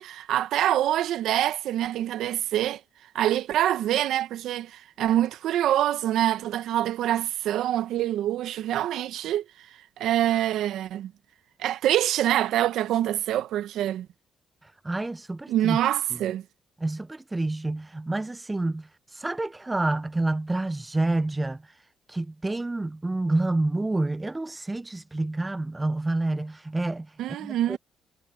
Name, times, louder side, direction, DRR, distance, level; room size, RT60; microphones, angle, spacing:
voice 1, 0.0-2.8 3.1-9.4 10.0-11.1 11.6-14.1 15.5-16.4 27.2-27.8, right 12 dB, 80° right, 1.2 m, -25 dB
voice 2, 14.6-15.8 16.8-21.8 22.1-27.8, right 2 dB, 20° right, 1.0 m, -28 dB
supercardioid pair, 55°, 0 cm